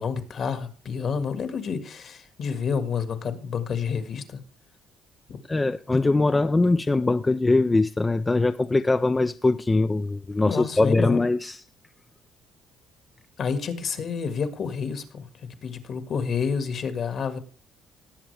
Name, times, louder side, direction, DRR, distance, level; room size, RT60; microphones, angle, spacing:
voice 1, 0.0-4.4 5.3-5.4 10.4-11.2 13.4-17.4, left 6 dB, 55° left, 1.8 m, -29 dB
voice 2, 5.5-11.6, left 2 dB, 15° left, 0.4 m, -22 dB
18.5 x 7.5 x 3.4 m
cardioid pair, 100°, 0 cm